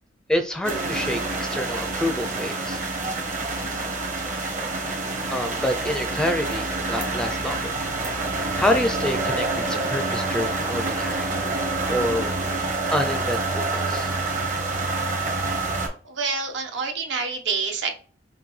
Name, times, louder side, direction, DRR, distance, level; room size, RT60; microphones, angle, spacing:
voice 1, 0.3-2.8 5.3-7.7 8.6-11.3 11.9-12.5 12.9-14.1, left 1 dB, 5° left, 5 dB, 0.4 m, -27 dB
sound 1, 0.6-15.9, right 3 dB, 45° right, 1.1 m, -27 dB
voice 2, 16.0-17.9, right 4 dB, 65° right, 3 dB, 0.9 m, -27 dB
5.7 x 2.2 x 3.2 m, 0.40 s
head